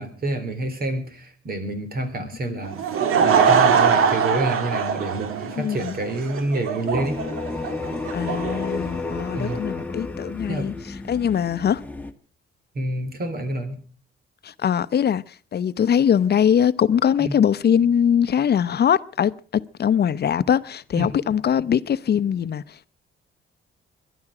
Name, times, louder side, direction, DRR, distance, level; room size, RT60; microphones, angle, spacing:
voice 1, 0.0-2.8 3.2-7.2 9.3-9.6 10.5-10.7 12.8-13.8 17.2-17.3 20.9-21.1, right 2 dB, 45° right, 3.8 m, -28 dB
Laughter / Crowd, 2.6-9.6, right 6 dB, 85° right, 1.8 m, -22 dB
voice 2, 5.6-6.0 8.1-10.7 11.1-11.8 14.4-22.9, left 8 dB, 50° left, 0.7 m, -22 dB
sound 1, 6.9-12.1, left 3 dB, 5° left, 1.5 m, -31 dB
22.0 x 12.0 x 5.0 m
cardioid pair, 110°, 21 cm